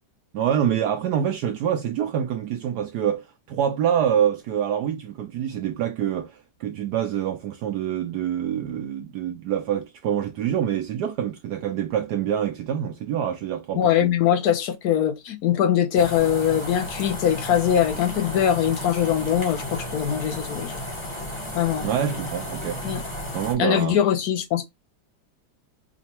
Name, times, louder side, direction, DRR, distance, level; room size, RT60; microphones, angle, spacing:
voice 1, 0.3-14.1 21.8-22.8 23.3-24.0, right 9 dB, 70° right, 1.0 m, -26 dB
voice 2, 13.8-20.7 21.5-21.9 22.8-23.0 23.6-24.7, left 9 dB, 65° left, 1.0 m, -22 dB
sound 1, 16.0-23.5, left 1 dB, 25° left, 0.6 m, -33 dB
5.0 x 2.2 x 2.9 m
omnidirectional pair, 2.1 m